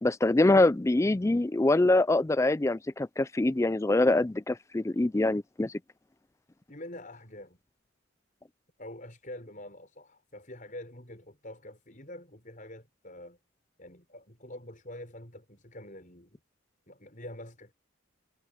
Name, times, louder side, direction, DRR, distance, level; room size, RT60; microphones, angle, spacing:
voice 1, 0.0-5.7, left 2 dB, 15° left, 0.3 m, -24 dB
voice 2, 6.7-7.6 8.8-13.4 13.8-16.4 16.9-17.7, left 1 dB, 40° left, 6.5 m, -46 dB
head